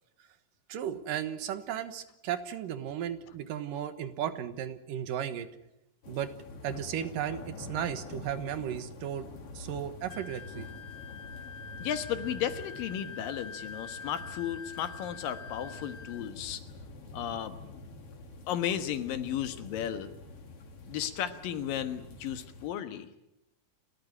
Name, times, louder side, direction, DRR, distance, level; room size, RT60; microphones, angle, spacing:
voice 1, 0.7-5.5 6.1-6.3 6.6-9.3 9.5-10.7, right 10 dB, 75° right, 11 dB, 3.0 m, -35 dB
sound 1, 6.0-22.7, left 3 dB, 45° left, 3.0 m, -47 dB
Wind instrument woodwind instrument, 10.1-16.3, left 5 dB, 60° left, 2.1 m, -45 dB
voice 2, 11.8-16.6 17.1-17.6 18.5-20.1 20.9-23.1, left 10 dB, 80° left, 9 dB, 3.1 m, -34 dB
30.0 x 13.5 x 9.8 m, 0.90 s
omnidirectional pair, 3.9 m